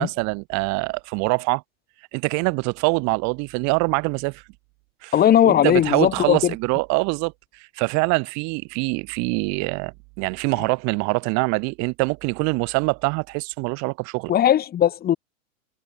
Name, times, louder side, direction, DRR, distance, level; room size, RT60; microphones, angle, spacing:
voice 1, 0.0-1.6 2.1-4.4 5.0-5.1 5.4-14.3, right 30 dB, 40° right, 6.3 m, -24 dB
voice 2, 5.1-6.5 14.3-15.2, left 10 dB, 20° left, 4.1 m, -18 dB
hypercardioid pair, 145°, 43 cm